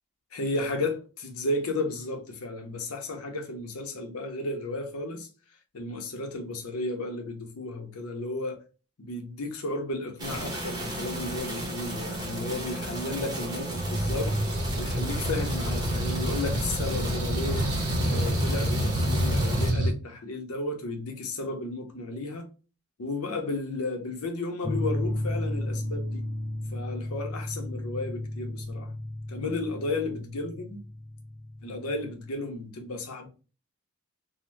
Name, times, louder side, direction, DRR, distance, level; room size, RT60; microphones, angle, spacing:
voice 1, 0.3-5.3 5.7-8.6 9.0-14.3 14.8-17.7 18.0-22.5 23.0-26.2 26.7-28.9 29.3-30.8 31.6-33.3, left 2 dB, 85° left, 0.7 m, -33 dB
sound 1, 10.2-19.7, right 1 dB, 20° right, 0.7 m, -34 dB
sound 2, 13.7-19.9, equal, 80° right, 0.8 m, -28 dB
sound 3, 24.6-32.3, left 1 dB, 20° left, 0.4 m, -34 dB
2.8 x 2.1 x 3.2 m
head